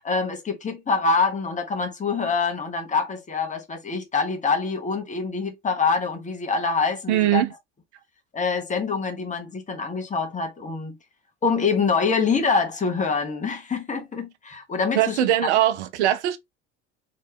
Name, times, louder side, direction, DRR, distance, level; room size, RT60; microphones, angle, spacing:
voice 1, 0.0-7.4 8.3-11.0 11.4-15.2, left 4 dB, 20° left, 1.1 m, -25 dB
voice 2, 7.1-7.5 14.9-16.4, right 12 dB, 70° right, 0.6 m, -21 dB
3.2 x 2.9 x 2.9 m
figure-of-eight pair, 60°, 35 cm